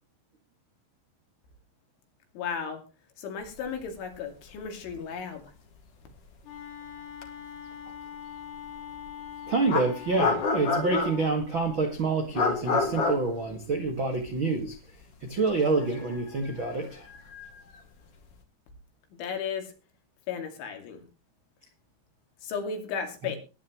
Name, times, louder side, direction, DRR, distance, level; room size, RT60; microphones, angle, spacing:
voice 1, 2.3-2.8 3.2-5.4 19.2-19.7 20.3-21.0 22.4-23.4, left 6 dB, 70° left, 4 dB, 4.8 m, -34 dB
sound 1, 4.5-4.6 4.9-5.0 7.2-7.3 9.1-9.2 9.7-11.4 12.3-14.3 14.6-14.7 15.5-17.8, left 4 dB, 45° left, 2.0 m, -29 dB
Wind instrument woodwind instrument, 6.4-11.3, left 9 dB, 85° left, 5.0 m, -42 dB
voice 2, 9.5-14.8 15.2-17.1, right 3 dB, 70° right, 4 dB, 1.1 m, -27 dB
21.0 x 10.5 x 3.1 m, 0.32 s
omnidirectional pair, 5.7 m